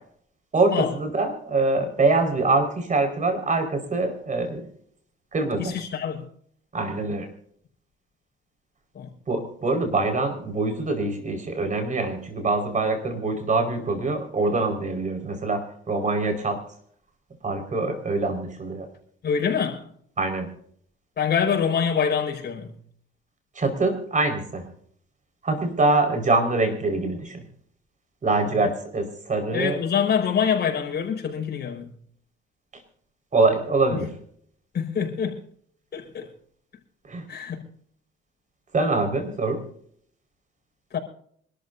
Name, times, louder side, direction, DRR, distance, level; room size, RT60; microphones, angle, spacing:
voice 1, 0.5-4.7 5.3-5.7 6.7-7.3 9.3-16.6 17.4-18.9 20.2-20.5 23.5-24.6 25.4-27.4 28.2-29.8 33.3-34.1 37.1-37.2 38.7-39.6, right 3 dB, 40° right, 5.0 m, -24 dB
voice 2, 5.6-6.2 8.9-9.1 19.2-19.8 21.2-22.7 28.5-28.7 29.5-31.9 34.7-35.4 35.9-36.3 37.3-37.6 40.9-41.0, left 7 dB, 55° left, 5.0 m, -25 dB
26.0 x 13.0 x 2.7 m
cardioid pair, 90°, 20 cm